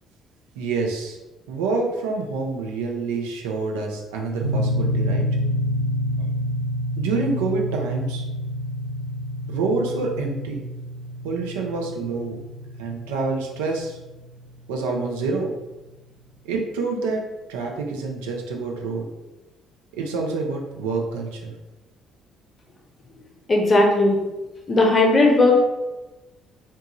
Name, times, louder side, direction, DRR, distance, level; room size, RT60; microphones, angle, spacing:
voice 1, 0.6-1.2 1.5-5.3 7.0-8.3 9.5-10.6 11.2-12.4 12.8-14.0 14.7-15.5 16.4-17.2 17.5-19.1 20.0-21.5, right 3 dB, 70° right, 1 dB, 0.4 m, -27 dB
sound 1, 4.4-14.6, equal, 90° left, 0.4 m, -28 dB
voice 2, 23.5-24.2 24.7-25.6, left 2 dB, 30° left, 1 dB, 0.6 m, -16 dB
2.8 x 2.2 x 2.9 m, 1.1 s
figure-of-eight pair, 50°, 0 cm